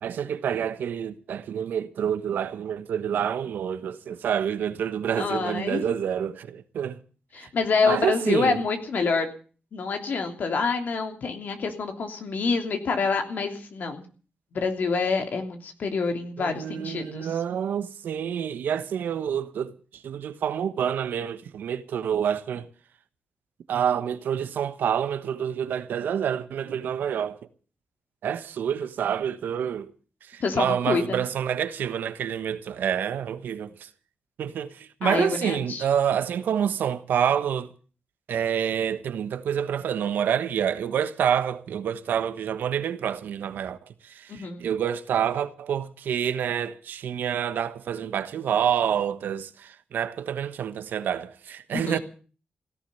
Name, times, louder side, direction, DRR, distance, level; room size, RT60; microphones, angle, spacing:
voice 1, 0.0-7.0 7.4-7.5 7.8-8.6 16.4-22.7 23.7-27.4 28.2-29.9 30.2-33.9 34.4-37.7 38.3-43.8 44.0-52.0, right 8 dB, 90° right, 1.3 m, -28 dB
voice 2, 5.2-5.8 7.3-9.3 9.7-14.0 14.5-17.3 30.4-31.2 35.0-35.8 44.3-44.6 51.7-52.0, left 4 dB, 70° left, 3.1 m, -27 dB
17.0 x 11.5 x 6.9 m
cardioid pair, 70°, 3 cm